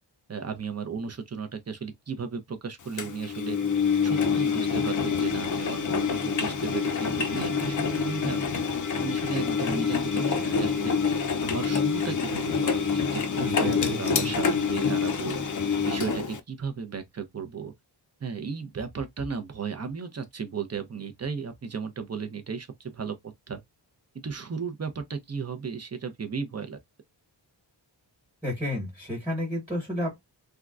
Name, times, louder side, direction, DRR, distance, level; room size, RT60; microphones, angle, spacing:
voice 1, 0.3-3.6 4.0-8.5 9.0-10.9 11.4-15.4 15.8-17.7 18.2-23.6 24.2-26.8, right 5 dB, 35° right, 0.6 m, -35 dB
Engine, 3.0-16.4, left 5 dB, 45° left, 0.5 m, -26 dB
voice 2, 13.3-14.3 28.4-30.2, left 1 dB, 5° right, 1.3 m, -32 dB
3.6 x 2.3 x 2.4 m
wide cardioid pair, 130°, 44 cm